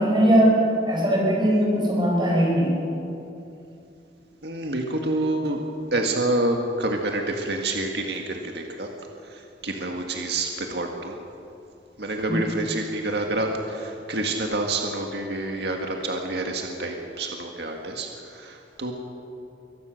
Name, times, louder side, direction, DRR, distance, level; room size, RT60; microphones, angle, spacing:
voice 1, 0.0-2.7 12.3-12.4, equal, 25° right, -2 dB, 5.5 m, -20 dB
voice 2, 4.4-5.6 5.9-8.9 9.2-11.2 12.0-18.9, right 2 dB, 65° right, 2 dB, 1.9 m, -28 dB
24.0 x 18.5 x 6.6 m, 2.7 s
head